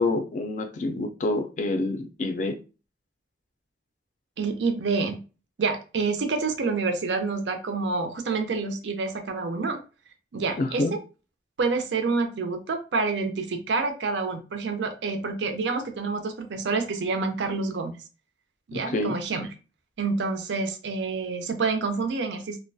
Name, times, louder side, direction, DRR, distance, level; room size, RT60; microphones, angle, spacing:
voice 1, 0.0-2.6 10.6-11.0 18.7-19.2, left 2 dB, 45° left, 7 dB, 0.3 m, -27 dB
voice 2, 4.4-5.2 5.6-9.8 10.3-11.0 11.6-17.9 18.7-19.5 20.0-22.6, right 4 dB, 85° right, 7 dB, 0.5 m, -28 dB
2.3 x 2.1 x 2.5 m, 0.33 s
head